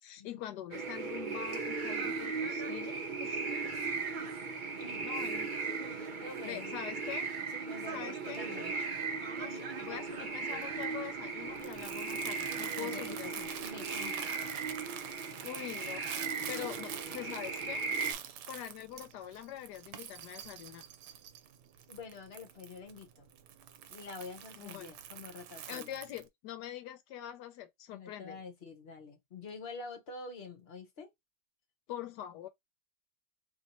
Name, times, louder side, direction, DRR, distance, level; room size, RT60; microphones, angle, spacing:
voice 1, 0.0-3.8 5.0-5.5 6.4-7.3 7.9-8.4 9.3-13.5 15.4-16.1 16.5-17.8 18.5-20.8 24.6-24.9 25.7-28.4 31.9-32.5, left 11 dB, 90° left, 1.2 m, -44 dB
sound 1, 0.7-18.1, right 4 dB, 45° right, 0.7 m, -37 dB
voice 2, 6.2-6.7 7.7-8.7 12.8-14.3 17.9-18.1 21.9-23.3 23.9-25.9 27.9-31.1, left 4 dB, 45° left, 1.1 m, -47 dB
Crumpling crinkling, 9.9-26.3, right 9 dB, 90° right, 1.2 m, -47 dB
3.0 x 2.6 x 4.1 m
omnidirectional pair, 1.8 m